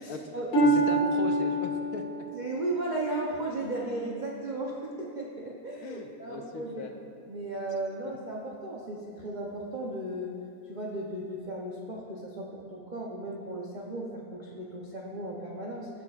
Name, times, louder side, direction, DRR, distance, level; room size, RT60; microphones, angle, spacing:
voice 1, 0.0-0.5 2.3-6.8 7.3-10.3 10.7-15.9, right 2 dB, 70° right, -2 dB, 0.4 m, -35 dB
Harp, 0.5-4.3 4.8-5.2 5.9-6.0, right 2 dB, 35° left, 1.7 m, -28 dB
voice 2, 0.6-2.3 5.8-6.9, left 4 dB, 65° left, 4 dB, 1.1 m, -37 dB
17.0 x 6.2 x 2.4 m, 2.5 s
omnidirectional pair, 1.9 m